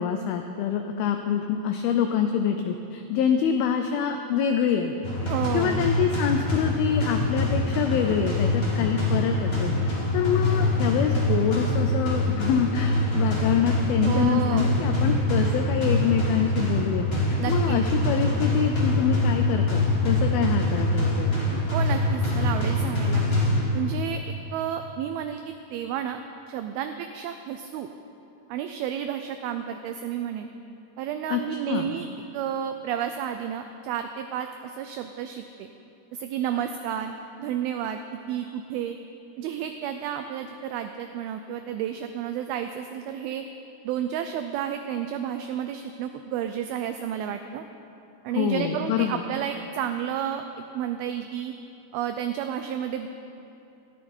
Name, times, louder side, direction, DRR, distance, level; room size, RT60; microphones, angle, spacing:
voice 1, 0.0-4.9 5.5-21.4 31.3-31.9 48.4-49.2, left 8 dB, 80° left, 5 dB, 2.3 m, -26 dB
sound 1, 5.0-24.0, left 1 dB, 20° left, 1.8 m, -24 dB
voice 2, 5.3-5.9 14.0-14.8 17.4-17.8 21.7-23.2 23.7-26.2 26.5-27.9 28.5-30.5 31.0-32.1 32.3-35.7 36.1-38.0 38.3-39.0 39.4-43.4 43.8-47.6 48.2-50.4 50.7-51.5 51.9-53.1, right 9 dB, 85° right, 7 dB, 2.2 m, -31 dB
19.5 x 13.0 x 4.4 m, 2.8 s
omnidirectional pair, 4.9 m